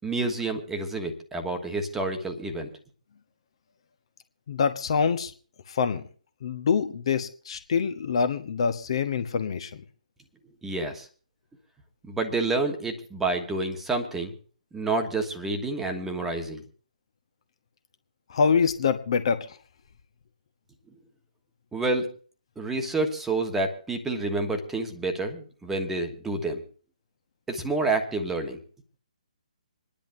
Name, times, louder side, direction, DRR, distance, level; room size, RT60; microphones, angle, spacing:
voice 1, 0.0-2.7 10.6-11.1 12.1-14.3 14.7-16.6 21.7-22.1 22.6-26.6 27.5-28.6, right 2 dB, 5° right, 4 dB, 1.2 m, -28 dB
voice 2, 4.5-5.3 5.7-6.0 6.4-9.8 18.3-19.6, left 6 dB, 45° left, 9 dB, 1.1 m, -25 dB
27.0 x 10.5 x 2.7 m, 0.41 s
figure-of-eight pair, 135°, 4 cm